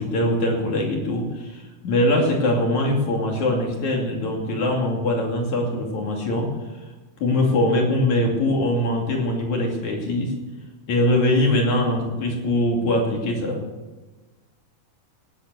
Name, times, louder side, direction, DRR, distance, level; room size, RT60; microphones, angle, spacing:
voice 1, 0.0-6.5 7.2-10.3 10.9-13.6, left 1 dB, 55° left, 0 dB, 3.9 m, -22 dB
17.5 x 9.5 x 6.9 m, 1.2 s
omnidirectional pair, 4.0 m